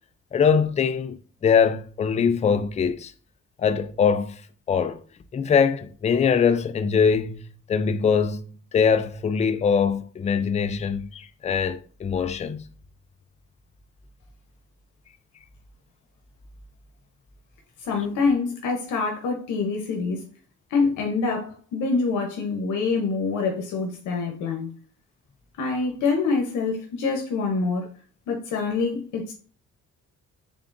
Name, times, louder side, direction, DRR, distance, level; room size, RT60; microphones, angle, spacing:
voice 1, 0.3-3.1 3.6-4.4 4.7-5.0 5.3-8.4 8.7-12.6, left 6 dB, 25° left, 0.4 m, -22 dB
voice 2, 17.8-20.2 20.7-24.7 25.6-27.9 28.3-29.3, left 4 dB, 85° left, 0.8 m, -25 dB
3.8 x 3.5 x 2.5 m
cardioid pair, 90°, 30 cm